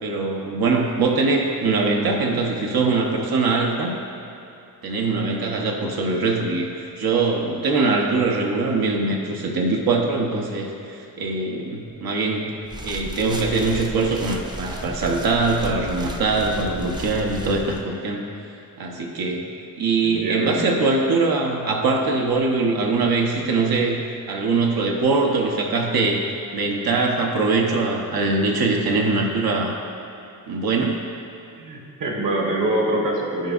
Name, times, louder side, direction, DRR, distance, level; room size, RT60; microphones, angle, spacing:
voice 1, 0.0-4.0 4.8-12.6 12.8-18.3 18.8-19.5 19.8-24.0 24.3-26.2 26.5-29.8 30.5-31.1, right 3 dB, 85° right, 0 dB, 0.9 m, -22 dB
sound 1, 12.6-17.8, right 1 dB, 15° right, 0.4 m, -34 dB
voice 2, 20.0-20.9 31.6-33.5, right 1 dB, 60° right, -1 dB, 1.4 m, -25 dB
13.0 x 5.0 x 2.5 m, 2.7 s
wide cardioid pair, 160°, 35 cm